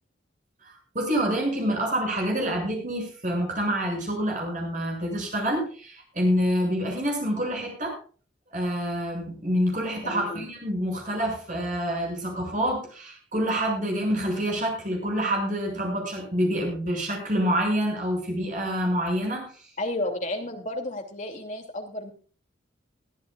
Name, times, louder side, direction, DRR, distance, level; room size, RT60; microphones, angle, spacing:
voice 1, 0.6-8.0 8.5-19.5, equal, 40° right, 0 dB, 6.9 m, -27 dB
voice 2, 10.0-10.4 19.8-22.1, left 1 dB, 40° left, 3 dB, 2.7 m, -32 dB
22.5 x 12.5 x 2.4 m, 0.40 s
head